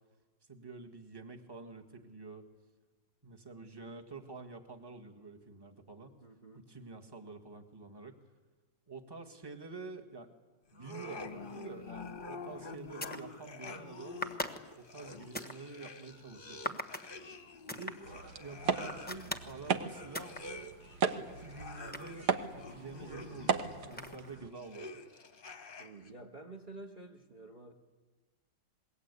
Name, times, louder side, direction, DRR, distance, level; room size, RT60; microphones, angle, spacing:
voice 1, 0.5-2.5 3.2-6.2 6.5-8.2 8.9-10.3 10.7-14.2 14.8-16.8 17.8-20.8 21.1-24.9, right 3 dB, 15° right, 5 dB, 1.8 m, -48 dB
voice 2, 6.2-6.7 17.7-18.0 25.8-27.7, right 2 dB, 30° right, 3 dB, 1.6 m, -50 dB
sound 1, 10.7-26.1, left 3 dB, 30° left, 1.2 m, -48 dB
sound 2, 12.1-12.3 12.8-13.3 14.2-15.6 16.6-17.1 17.7-18.0 18.8-19.6 20.1-20.4 20.9-22.6 23.9-24.4, left 1 dB, 5° left, 1.0 m, -40 dB
sound 3, 18.0-24.5, right 6 dB, 65° right, 1.7 m, -37 dB
27.0 x 22.0 x 8.3 m, 1.3 s
omnidirectional pair, 2.0 m